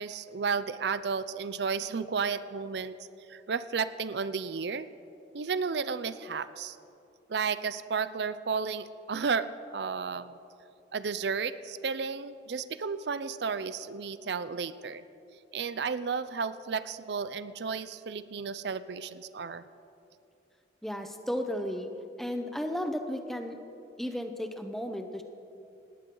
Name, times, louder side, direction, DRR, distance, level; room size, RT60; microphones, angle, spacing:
voice 1, 0.0-3.0 3.3-4.9 5.3-6.8 7.3-10.4 10.9-15.0 15.5-19.6, right 5 dB, 70° right, 14 dB, 0.5 m, -33 dB
voice 2, 20.8-21.9 22.2-23.6 24.0-25.2, equal, ahead, 6 dB, 0.9 m, -34 dB
18.5 x 17.0 x 3.9 m, 2.6 s
head